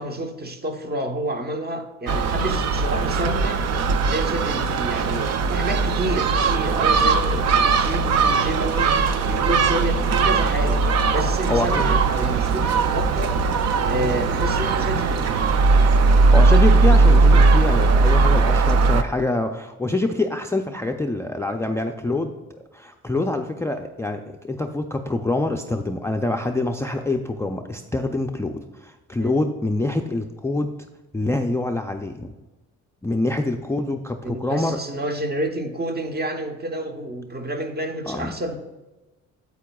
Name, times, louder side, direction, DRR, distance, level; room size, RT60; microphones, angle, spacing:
voice 1, 0.0-3.7 4.0-10.8 11.1-13.4 13.8-15.4 29.2-29.4 34.2-38.6, right 1 dB, 30° right, 4 dB, 1.0 m, -29 dB
Gull seagull, 2.1-19.0, right 4 dB, 60° right, 0.5 m, -19 dB
voice 2, 11.5-12.0 16.3-30.7 31.1-32.3 33.0-34.8 38.1-38.4, left 2 dB, 10° left, 5 dB, 0.4 m, -25 dB
8.3 x 8.3 x 2.3 m, 1.1 s
cardioid pair, 90°, 30 cm